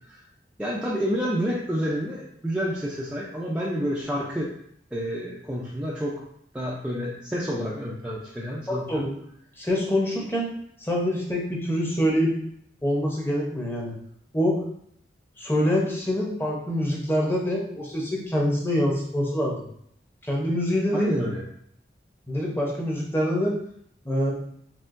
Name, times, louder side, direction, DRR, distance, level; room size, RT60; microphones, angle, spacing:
voice 1, 0.6-4.5 4.9-6.2 6.5-9.0 20.9-21.4, equal, 5° right, -5 dB, 0.4 m, -29 dB
voice 2, 8.7-9.1 9.6-10.5 10.8-12.3 12.8-13.9 14.3-14.6 15.4-19.7 20.2-21.1 22.3-23.5 24.0-24.3, equal, 10° left, -2 dB, 0.8 m, -25 dB
4.4 x 3.5 x 2.5 m, 0.69 s
head